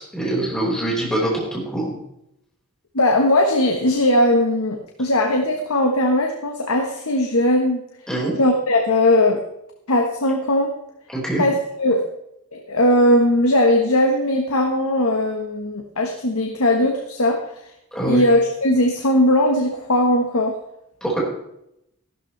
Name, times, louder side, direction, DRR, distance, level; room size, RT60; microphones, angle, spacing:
voice 1, 0.0-2.0 8.1-8.4 11.1-11.4 17.9-18.2 21.0-21.2, right 1 dB, 5° left, -4 dB, 5.0 m, -24 dB
voice 2, 2.9-7.8 8.4-9.4 9.9-10.7 11.4-12.0 12.5-17.4 18.0-20.5, left 1 dB, 75° left, 3 dB, 1.4 m, -19 dB
14.0 x 12.5 x 3.3 m, 0.80 s
head